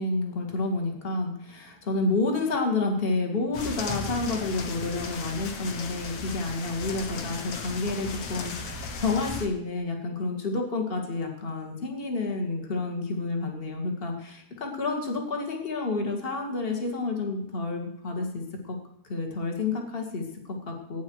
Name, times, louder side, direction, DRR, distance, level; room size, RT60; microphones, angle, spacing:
voice 1, 0.0-18.8 19.1-21.0, left 3 dB, 45° left, 3 dB, 0.7 m, -29 dB
sound 1, 3.5-9.5, left 4 dB, 75° left, 1.3 m, -36 dB
16.5 x 9.7 x 4.8 m, 0.80 s
omnidirectional pair, 4.8 m